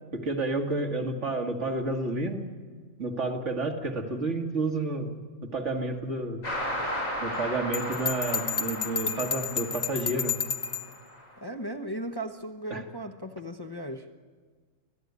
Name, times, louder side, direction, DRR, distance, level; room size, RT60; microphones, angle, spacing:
voice 1, 0.1-2.4 3.0-5.1 5.5-6.4 7.2-10.3 12.7-12.8, right 2 dB, 65° right, 3 dB, 2.4 m, -30 dB
sound 1, 6.4-11.2, equal, 85° left, 6.7 m, -35 dB
Bell, 7.7-10.9, left 6 dB, 55° left, 1.4 m, -31 dB
voice 2, 11.4-14.1, right 1 dB, 20° left, 4 dB, 1.0 m, -36 dB
26.0 x 16.0 x 9.6 m, 1.5 s
omnidirectional pair, 1.3 m